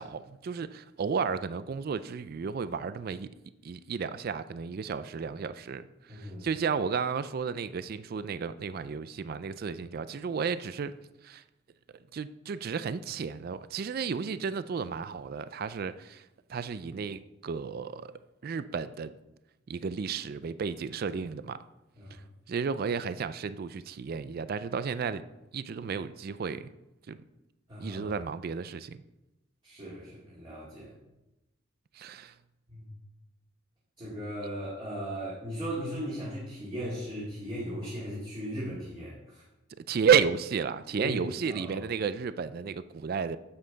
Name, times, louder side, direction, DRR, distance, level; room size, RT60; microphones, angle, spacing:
voice 1, 0.0-3.3 3.6-10.9 11.2-11.4 12.1-16.2 16.5-18.1 18.4-19.1 19.7-21.6 22.5-25.2 25.5-26.7 27.1-27.2 27.8-29.0 32.0-32.3 39.9-43.4, right 6 dB, 50° right, 14 dB, 0.3 m, -32 dB
voice 2, 6.1-6.5 22.0-22.2 27.7-28.1 29.6-30.9 32.7-32.9 34.0-39.4 40.9-41.9, equal, 25° right, -8 dB, 2.3 m, -37 dB
9.8 x 7.7 x 3.9 m, 0.96 s
head